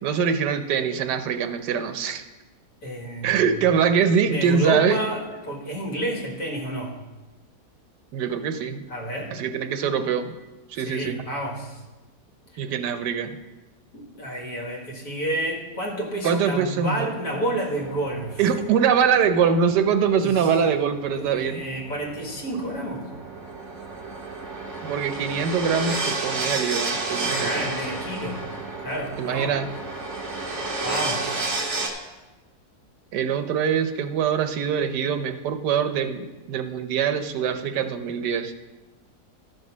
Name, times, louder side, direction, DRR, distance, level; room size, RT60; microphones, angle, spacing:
voice 1, 0.0-2.2 3.2-5.0 8.1-8.9 9.3-10.3 10.7-11.2 12.6-13.4 16.2-17.1 18.4-21.6 24.8-27.7 29.2-29.7 33.1-38.5, right 7 dB, 80° right, 8 dB, 1.3 m, -23 dB
voice 2, 2.8-3.5 3.9-7.0 8.9-9.3 10.8-11.8 12.5-12.6 13.9-18.4 20.2-20.5 21.1-23.1 27.3-28.5 28.8-29.5 30.8-31.8, right 1 dB, 65° left, -2 dB, 2.3 m, -30 dB
sound 1, 17.7-31.9, right 3 dB, 45° right, 1.7 m, -32 dB
12.5 x 5.3 x 6.1 m, 1.1 s
omnidirectional pair, 1.8 m